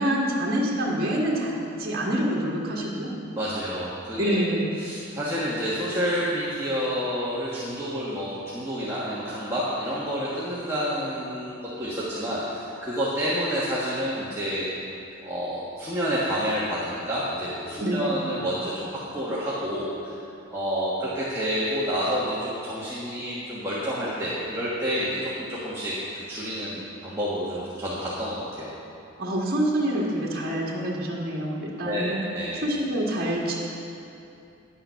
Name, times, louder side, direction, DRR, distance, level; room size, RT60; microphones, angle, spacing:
voice 1, 0.0-3.1 4.2-4.7 17.8-18.2 29.2-32.2 32.6-33.5, right 1 dB, 45° right, -4 dB, 1.8 m, -26 dB
voice 2, 3.3-4.5 4.8-14.9 15.2-18.9 19.1-20.1 20.5-25.9 26.3-28.7 31.8-32.6, equal, 15° right, -9 dB, 1.4 m, -29 dB
10.5 x 8.9 x 5.7 m, 2.7 s
head